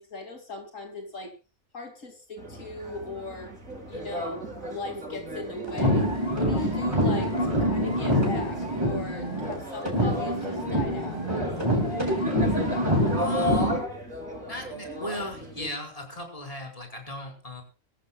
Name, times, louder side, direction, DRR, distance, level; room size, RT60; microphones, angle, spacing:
voice 1, 0.0-1.3 1.7-3.5 3.9-6.1 6.3-11.2, left 2 dB, 75° left, 3 dB, 3.1 m, -38 dB
sound 1, 2.4-15.7, equal, 90° right, 5.1 m, -35 dB
sound 2, 5.7-9.6 9.8-13.8, equal, 20° right, 4.2 m, -25 dB
voice 2, 13.2-13.7 14.5-17.6, left 1 dB, 25° left, 1 dB, 4.9 m, -37 dB
24.0 x 14.0 x 2.3 m, 0.33 s
omnidirectional pair, 1.3 m